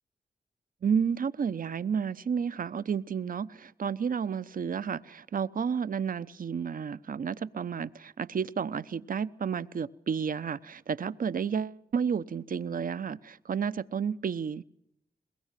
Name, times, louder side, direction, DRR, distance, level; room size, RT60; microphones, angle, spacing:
voice 1, 0.8-14.6, right 7 dB, 60° right, 15 dB, 0.8 m, -31 dB
22.0 x 19.5 x 7.5 m, 0.80 s
supercardioid pair, 40°, 16 cm